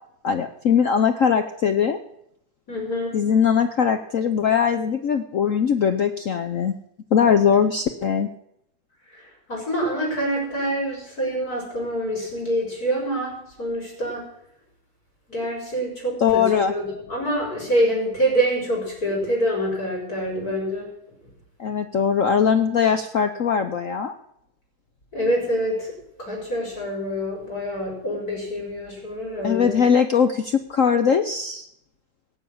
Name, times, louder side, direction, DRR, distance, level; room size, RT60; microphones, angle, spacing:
voice 1, 0.2-2.0 3.1-6.7 7.1-8.3 16.2-16.7 21.6-24.1 29.4-31.7, left 7 dB, 65° left, 8 dB, 0.8 m, -20 dB
voice 2, 2.7-3.2 9.5-14.3 15.3-20.9 25.1-25.9 26.2-29.8, equal, 45° left, -2 dB, 5.2 m, -26 dB
18.0 x 7.1 x 8.7 m, 0.77 s
omnidirectional pair, 2.2 m